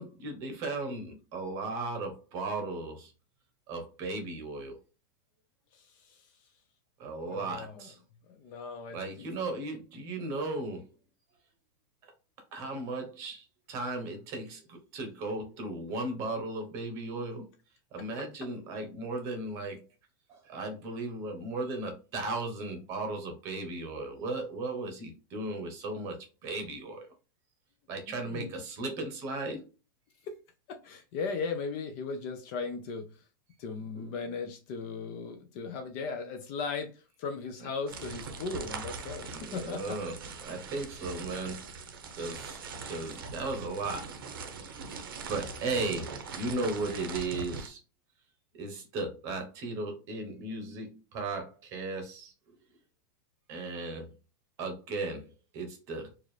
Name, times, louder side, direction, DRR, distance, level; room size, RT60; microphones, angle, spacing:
voice 1, 0.0-3.1 3.7-4.7 7.0-8.0 8.9-10.9 12.5-17.5 17.9-19.8 20.3-27.1 27.9-29.7 33.9-34.1 39.3-40.1 40.4-41.7 42.2-44.1 45.3-47.8 48.6-52.3 53.5-54.1 54.6-56.1, right 2 dB, 25° right, 0.9 m, -36 dB
voice 2, 5.7-6.3 7.2-7.9 8.3-9.2 18.0-18.3 28.1-28.5 30.3-30.4 30.7-33.1 33.6-40.0, left 4 dB, 30° left, 0.4 m, -37 dB
sound 1, 37.9-47.7, right 4 dB, 90° right, 0.9 m, -41 dB
4.4 x 2.4 x 3.1 m
supercardioid pair, 175°, 11 cm